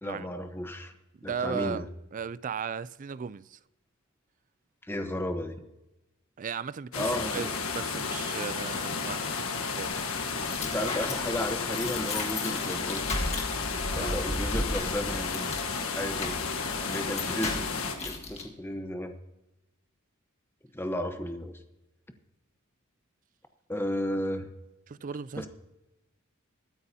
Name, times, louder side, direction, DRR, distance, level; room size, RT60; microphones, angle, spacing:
voice 1, 0.0-0.9 1.2-1.9 4.9-5.7 6.9-7.5 10.6-13.1 13.9-15.5 15.9-16.3 16.9-17.7 18.0-19.1 20.7-21.6 23.7-24.5 25.4-25.5, left 1 dB, 10° left, 1.0 m, -33 dB
voice 2, 1.1-3.6 6.4-10.0 13.9-14.3 16.6-16.9 24.9-25.5, right 6 dB, 40° right, 0.4 m, -37 dB
sound 1, 6.9-18.0, left 5 dB, 80° left, 1.5 m, -32 dB
sound 2, 10.1-18.4, left 2 dB, 30° left, 1.7 m, -36 dB
21.0 x 9.6 x 2.8 m
head